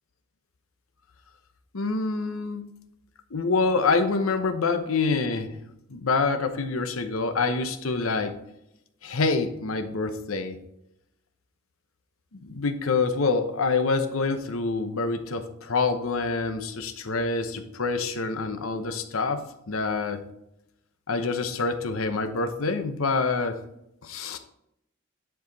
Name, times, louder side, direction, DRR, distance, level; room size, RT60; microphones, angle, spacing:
voice 1, 1.7-2.7 3.3-5.6 5.9-8.4 9.0-10.6 12.3-20.2 21.1-23.6 24.0-24.4, left 4 dB, 90° left, 8 dB, 0.9 m, -26 dB
10.0 x 4.8 x 4.0 m, 0.82 s
head